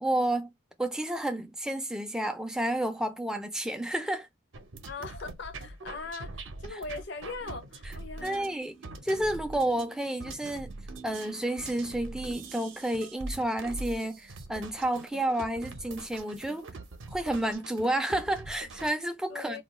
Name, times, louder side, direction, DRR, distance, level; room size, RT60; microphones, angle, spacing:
voice 1, 0.0-0.5 0.8-4.3 8.2-8.7 9.0-10.7 11.0-16.7 17.1-19.6, right 1 dB, 5° right, 0.3 m, -30 dB
sound 1, 4.5-18.9, right 2 dB, 65° right, 0.6 m, -43 dB
voice 2, 4.9-8.6 19.3-19.6, left 4 dB, 55° left, 0.6 m, -40 dB
2.3 x 2.3 x 3.9 m
head